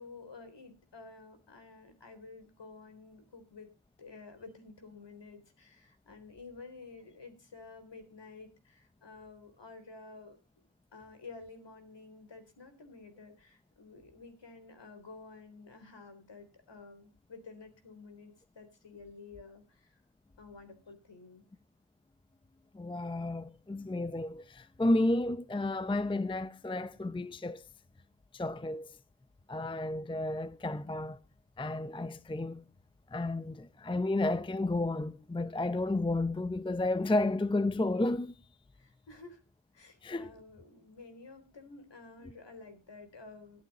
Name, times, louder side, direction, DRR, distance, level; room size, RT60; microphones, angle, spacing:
voice 1, 0.0-3.7 4.0-10.4 10.9-20.0 20.4-21.4 38.7-39.4 39.7-43.6, left 3 dB, 55° left, 3.8 m, -51 dB
voice 2, 22.7-27.6 28.3-29.0 29.5-31.2 31.6-32.6 33.1-38.3 40.0-40.3, left 2 dB, 10° left, 0.6 m, -32 dB
14.5 x 11.5 x 4.2 m
cardioid pair, 55°, 50 cm